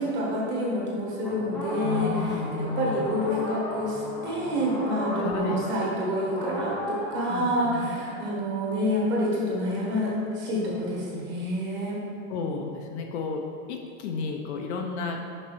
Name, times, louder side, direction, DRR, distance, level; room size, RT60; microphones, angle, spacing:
voice 1, 0.0-12.0, equal, 25° right, -4 dB, 1.4 m, -28 dB
sound 1, 1.2-5.9 6.3-7.4, equal, ahead, 0.5 m, -35 dB
voice 2, 1.8-3.1 5.2-5.7 7.3-7.9 12.3-15.2, left 4 dB, 55° left, 3 dB, 0.7 m, -32 dB
6.0 x 5.2 x 4.6 m, 2.5 s
supercardioid pair, 170°, 41 cm